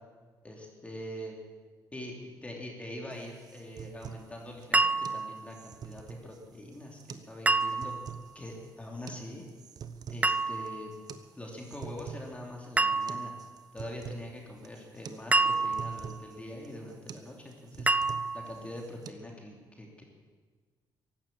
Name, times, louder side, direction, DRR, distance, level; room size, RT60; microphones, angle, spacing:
voice 1, 0.4-1.4 1.9-7.9 8.3-9.4 10.1-10.9 11.4-13.3 13.7-17.9 18.3-20.0, left 1 dB, 15° left, -1 dB, 3.2 m, -43 dB
sound 1, 3.1-19.1, right 7 dB, 55° right, 1.0 m, -47 dB
sound 2, 4.7-5.5 7.5-8.2 10.2-10.9 12.8-13.5 15.3-16.2 17.9-18.6, right 3 dB, 15° right, 0.5 m, -28 dB
15.5 x 12.0 x 7.6 m, 1.5 s
cardioid pair, 95°, 8 cm